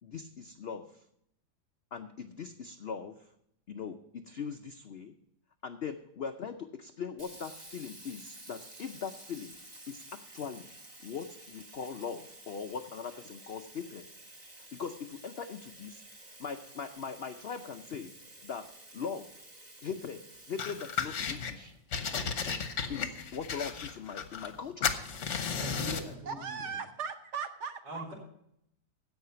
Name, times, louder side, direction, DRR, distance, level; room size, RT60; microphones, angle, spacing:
voice 1, 0.0-1.0 1.9-3.3 3.7-5.1 5.6-9.6 9.9-10.7 11.0-14.0 14.7-16.0 16.4-18.1 18.4-18.6 18.9-19.3 19.8-20.2 20.5-21.7 22.9-24.9, left 6 dB, 80° left, 7 dB, 0.5 m, -40 dB
Sink (filling or washing), 7.2-21.9, right 1 dB, 25° right, 1.6 m, -52 dB
sound 1, 20.6-21.5 21.9-24.6 24.8-26.1, left 6 dB, 50° left, 1.1 m, -34 dB
voice 2, 25.5-26.8 27.8-28.1, right 2 dB, 80° right, -1 dB, 4.8 m, -42 dB
voice 3, 26.3-28.0, right 6 dB, 55° right, 9 dB, 0.8 m, -38 dB
16.0 x 5.8 x 5.6 m, 0.74 s
omnidirectional pair, 1.9 m